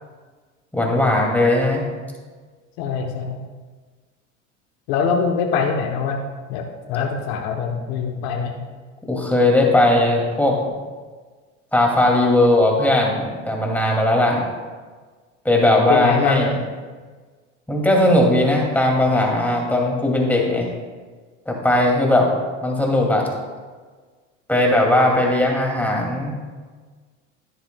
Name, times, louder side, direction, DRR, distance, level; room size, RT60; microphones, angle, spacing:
voice 1, 0.7-1.8 9.1-10.6 11.7-14.4 15.4-16.5 17.7-20.7 21.5-22.3 22.6-23.3 24.5-26.4, left 1 dB, 5° left, -1 dB, 2.4 m, -18 dB
voice 2, 2.8-3.4 4.9-6.2 6.5-8.5 15.9-16.6, left 5 dB, 65° left, 2 dB, 1.0 m, -23 dB
11.0 x 10.5 x 2.3 m, 1.4 s
hypercardioid pair, 85°, 35 cm